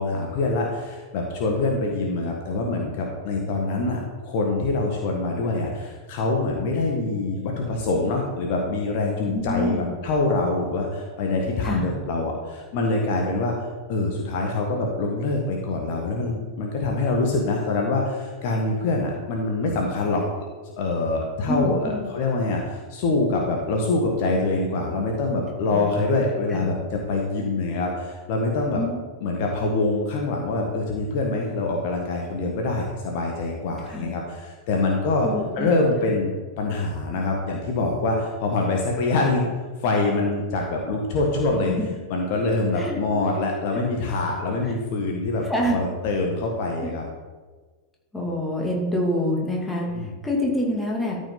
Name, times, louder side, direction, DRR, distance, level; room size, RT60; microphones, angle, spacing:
voice 1, 0.0-9.7 10.0-13.5 13.9-20.2 20.8-28.8 29.2-35.3 35.6-36.3 36.6-39.5 39.8-41.7 42.1-47.0 49.9-50.1, left 2 dB, 50° left, 0 dB, 1.4 m, -25 dB
voice 2, 9.3-9.9 11.6-11.9 21.5-22.1 26.5-26.7 28.8-29.0 33.9-34.1 35.2-35.7 41.6-41.9 42.8-43.0 44.6-44.7 45.5-45.8 46.8-46.9 48.1-51.2, left 1 dB, 10° left, -2 dB, 2.5 m, -26 dB
13.0 x 5.4 x 3.9 m, 1.4 s
figure-of-eight pair, 90°, 0 cm